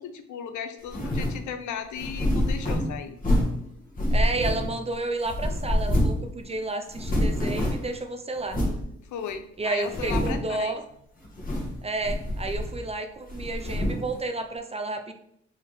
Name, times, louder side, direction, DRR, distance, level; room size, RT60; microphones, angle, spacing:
voice 1, 0.0-3.2 9.0-10.8, left 8 dB, 75° left, 9 dB, 0.6 m, -36 dB
sound 1, 0.9-1.4 2.0-3.6 4.0-4.9 5.2-6.3 6.5-6.6 6.9-7.9 8.5-8.8 9.3-9.4 9.8-10.5 11.2-11.8 12.0-12.9 13.3-14.1, left 1 dB, 30° left, 1.5 m, -26 dB
voice 2, 4.1-8.6 9.6-10.8 11.8-15.1, right 2 dB, 20° right, 6 dB, 0.5 m, -31 dB
4.4 x 3.6 x 3.1 m, 0.73 s
cardioid pair, 90°, 30 cm